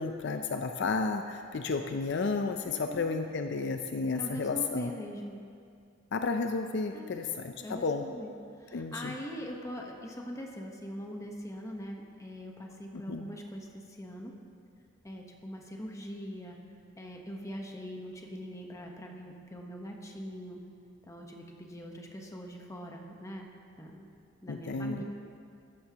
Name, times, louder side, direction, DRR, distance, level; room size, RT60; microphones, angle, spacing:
voice 1, 0.0-4.9 6.1-8.0 8.7-9.2 12.9-13.3 24.5-25.0, left 4 dB, 60° left, 6 dB, 0.5 m, -32 dB
voice 2, 2.7-3.2 4.1-5.4 6.9-7.2 7.6-8.3 8.6-14.3 15.0-16.6 17.0-20.6 21.0-23.5 23.8-24.1 24.4-25.0, equal, 15° left, 1 dB, 1.1 m, -42 dB
14.0 x 13.0 x 2.9 m, 2.3 s
head